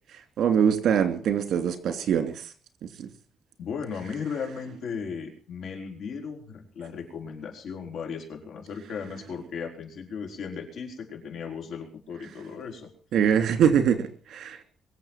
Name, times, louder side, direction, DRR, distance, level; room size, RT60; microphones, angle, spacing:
voice 1, 0.4-2.5 3.0-3.1 13.1-14.6, right 8 dB, 70° right, 8 dB, 3.1 m, -23 dB
voice 2, 3.6-12.9, left 6 dB, 65° left, 2 dB, 5.1 m, -36 dB
23.5 x 7.9 x 7.5 m, 0.43 s
cardioid pair, 160°, 0 cm